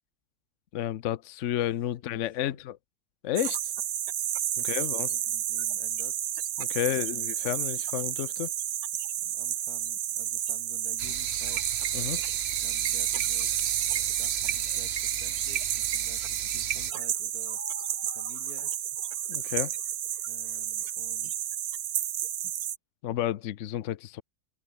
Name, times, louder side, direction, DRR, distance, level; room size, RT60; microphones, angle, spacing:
voice 1, 0.7-2.8 3.2-3.6 4.6-5.1 6.6-8.5 11.9-12.2 19.3-19.7 23.0-24.2, left 12 dB, 60° left, 0.9 m, -31 dB
voice 2, 1.9-2.7 4.6-6.2 6.8-7.2 9.2-11.7 12.6-13.5 14.1-17.6 18.0-18.7 19.3-19.5 20.3-21.5, left 5 dB, 90° left, 2.9 m, -52 dB
sound 1, 3.4-22.8, right 11 dB, 85° right, 1.4 m, -31 dB
sound 2, 11.0-16.9, right 9 dB, 50° right, 1.0 m, -35 dB
sound 3, 16.8-21.4, left 2 dB, 20° left, 0.4 m, -50 dB
omnidirectional pair, 1.6 m